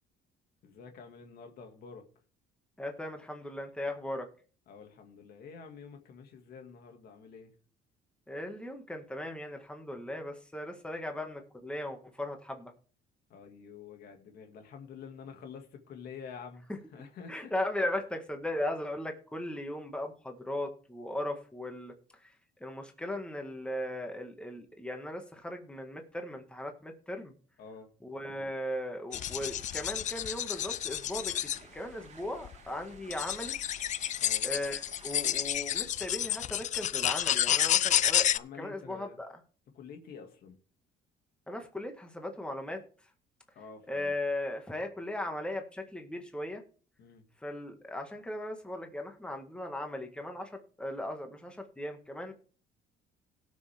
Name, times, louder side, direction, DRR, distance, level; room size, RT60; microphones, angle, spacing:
voice 1, 0.6-2.0 4.7-7.5 13.3-17.5 27.6-27.9 34.2-34.5 38.3-39.2 39.7-40.6 43.6-44.1 47.0-47.2, left 6 dB, 65° left, 4 dB, 2.2 m, -48 dB
voice 2, 2.8-4.3 8.3-12.7 16.7-16.8 17.3-21.9 22.6-27.3 28.0-33.6 34.4-38.3 38.6-39.3 41.5-42.8 43.9-46.6 47.4-52.3, left 1 dB, 5° left, 4 dB, 1.9 m, -37 dB
sound 1, 29.1-31.6 32.4-32.5 33.1-38.4, left 11 dB, 45° left, 0.4 m, -30 dB
sound 2, 29.1-35.4, right 6 dB, 40° right, 1.8 m, -56 dB
17.5 x 6.3 x 3.5 m, 0.40 s
cardioid pair, 110°, 17 cm